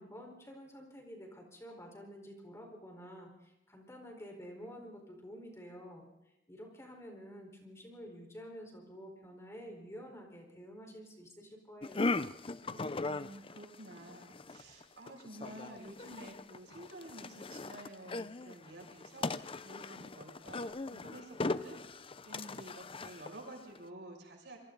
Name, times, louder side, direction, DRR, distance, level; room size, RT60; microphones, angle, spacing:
voice 1, 0.0-6.0 6.5-12.2, equal, 15° left, 2 dB, 4.6 m, -50 dB
sound 1, 11.8-23.8, left 3 dB, 30° left, 0.6 m, -39 dB
voice 2, 12.6-19.3 19.6-24.6, right 1 dB, 90° right, 0 dB, 6.8 m, -51 dB
27.5 x 23.5 x 4.0 m, 0.93 s
head